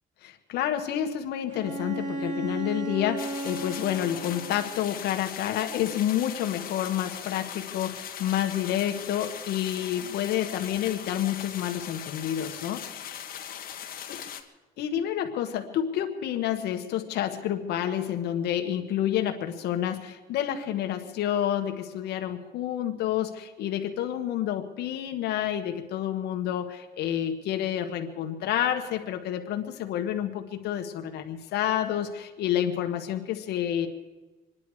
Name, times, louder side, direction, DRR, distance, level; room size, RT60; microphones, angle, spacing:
voice 1, 0.2-13.2 14.8-33.9, left 10 dB, 80° left, 5 dB, 1.6 m, -29 dB
Bowed string instrument, 1.5-5.0, right 2 dB, 45° right, 5.3 m, -35 dB
sound 1, 3.2-14.4, left 9 dB, 60° left, 1.8 m, -40 dB
27.0 x 10.5 x 4.9 m, 1.2 s
cardioid pair, 110°, 17 cm